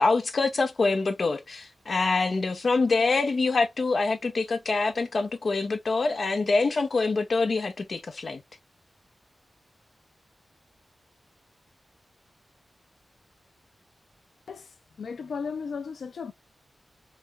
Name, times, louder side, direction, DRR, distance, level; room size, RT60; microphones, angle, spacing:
voice 1, 0.0-8.4, left 3 dB, 50° left, 0.9 m, -25 dB
voice 2, 14.5-16.3, left 5 dB, 90° left, 0.5 m, -35 dB
4.1 x 2.3 x 3.5 m
wide cardioid pair, 120°, 0 cm